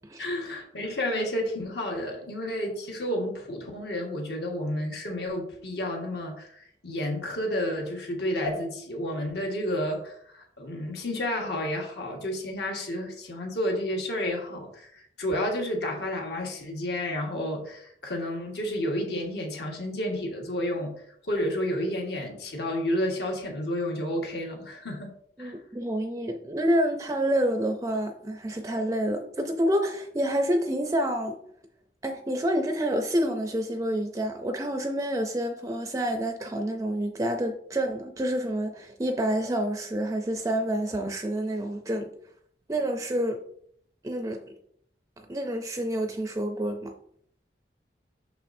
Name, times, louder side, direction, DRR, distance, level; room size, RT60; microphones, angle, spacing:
voice 1, 0.2-20.9 21.2-25.1 25.4-25.6, left 1 dB, 65° left, 1.4 m, -31 dB
voice 2, 25.4-31.4 32.0-42.1 42.7-43.4 44.0-44.4 45.2-46.9, right 1 dB, 20° right, 0.4 m, -28 dB
6.4 x 5.8 x 2.6 m
head